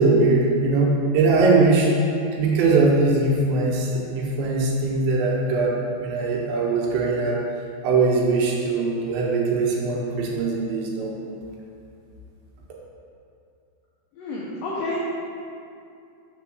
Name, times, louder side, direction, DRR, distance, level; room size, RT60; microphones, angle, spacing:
voice 1, 0.0-1.9 2.4-7.5 7.8-11.1, right 3 dB, 85° right, -2 dB, 3.2 m, -21 dB
voice 2, 14.1-15.0, left 2 dB, 90° left, -6 dB, 2.0 m, -30 dB
6.7 x 3.8 x 6.2 m, 2.5 s
omnidirectional pair, 5.2 m